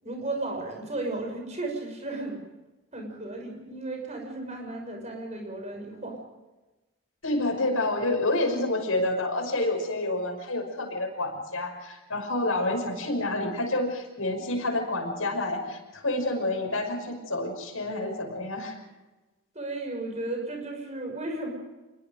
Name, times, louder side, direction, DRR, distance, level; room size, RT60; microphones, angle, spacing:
voice 1, 0.0-2.4 2.9-6.2 17.9-18.3 19.5-21.5, right 2 dB, 30° right, 2 dB, 6.0 m, -34 dB
voice 2, 7.2-18.8, left 2 dB, 75° left, 1 dB, 5.9 m, -28 dB
27.0 x 21.5 x 5.2 m, 1.1 s
head